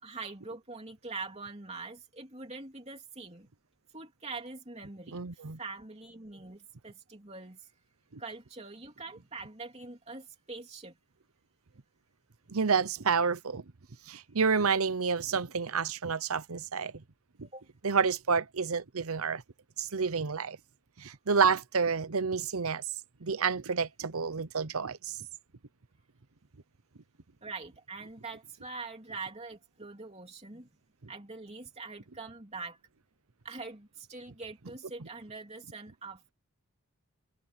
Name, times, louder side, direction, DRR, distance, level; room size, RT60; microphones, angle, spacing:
voice 1, 0.0-3.5 3.9-7.7 8.2-10.9 17.4-17.6 27.4-30.7 31.1-32.8 33.4-36.3, right 3 dB, 30° right, 3.0 m, -44 dB
voice 2, 5.1-5.6 12.5-13.6 14.1-16.9 17.8-19.4 19.8-20.6 21.0-22.8 23.2-25.2, right 5 dB, 80° right, 0.9 m, -29 dB
head